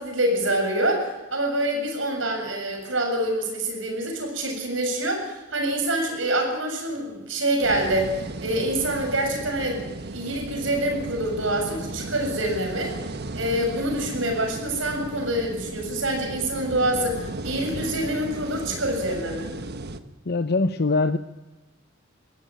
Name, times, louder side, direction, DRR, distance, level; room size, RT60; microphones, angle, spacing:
voice 1, 0.0-13.0 13.3-19.5, right 1 dB, 70° right, 3 dB, 7.4 m, -26 dB
sound 1, 7.6-20.0, right 2 dB, 55° right, 1.3 m, -35 dB
voice 2, 20.3-21.2, left 3 dB, 55° left, 10 dB, 0.8 m, -22 dB
22.5 x 16.0 x 9.1 m, 1.1 s
head